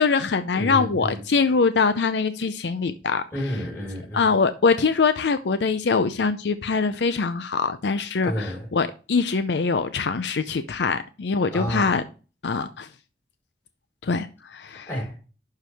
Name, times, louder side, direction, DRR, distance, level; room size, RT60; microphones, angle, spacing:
voice 1, 0.0-3.2 4.1-12.0 12.4-12.9 14.0-14.9, left 4 dB, 70° left, 10 dB, 0.5 m, -23 dB
voice 2, 0.5-1.2 3.3-4.3 8.2-8.7 11.5-12.0 14.7-15.2, equal, 15° left, -2 dB, 4.5 m, -30 dB
11.5 x 4.7 x 3.4 m, 0.34 s
head